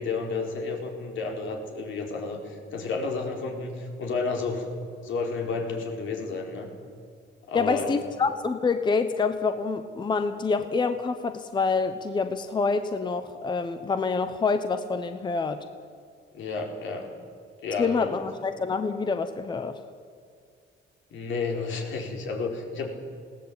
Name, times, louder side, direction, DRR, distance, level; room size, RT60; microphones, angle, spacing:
voice 1, 0.0-4.8 5.0-6.7 7.5-8.0 16.3-17.1 17.6-18.2 21.1-22.9, left 4 dB, 75° left, 2 dB, 4.3 m, -31 dB
voice 2, 7.5-15.6 17.8-19.7, left 4 dB, 20° left, 9 dB, 0.9 m, -27 dB
20.5 x 17.5 x 8.7 m, 2.2 s
cardioid pair, 170°, 20 cm